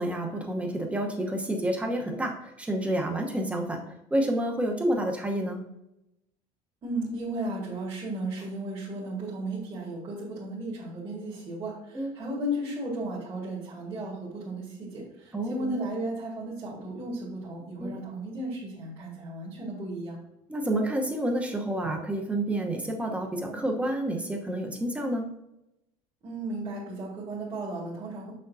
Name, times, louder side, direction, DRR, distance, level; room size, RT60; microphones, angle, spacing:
voice 1, 0.0-3.8 4.1-5.6 11.9-12.1 15.3-15.7 17.8-18.0 20.5-25.3, right 1 dB, 10° right, 2 dB, 1.0 m, -29 dB
voice 2, 6.8-20.2 26.2-28.3, right 1 dB, 30° right, -6 dB, 1.9 m, -35 dB
6.7 x 6.5 x 2.7 m, 0.85 s
cardioid pair, 145°, 15 cm